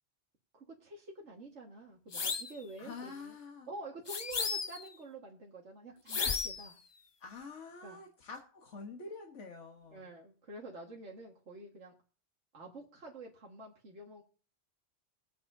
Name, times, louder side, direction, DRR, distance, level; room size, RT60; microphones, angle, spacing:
voice 1, 0.5-3.4 3.7-6.8 7.8-8.0 9.9-11.9 12.5-14.2, right 2 dB, 80° right, -2 dB, 2.1 m, -48 dB
sound 1, 2.1-2.6 4.1-4.9 6.1-6.7, left 5 dB, 45° left, 0.3 m, -34 dB
voice 2, 2.8-3.7 7.2-10.2, left 4 dB, 80° left, 2 dB, 1.7 m, -47 dB
20.5 x 8.7 x 2.7 m, 0.37 s
omnidirectional pair, 1.2 m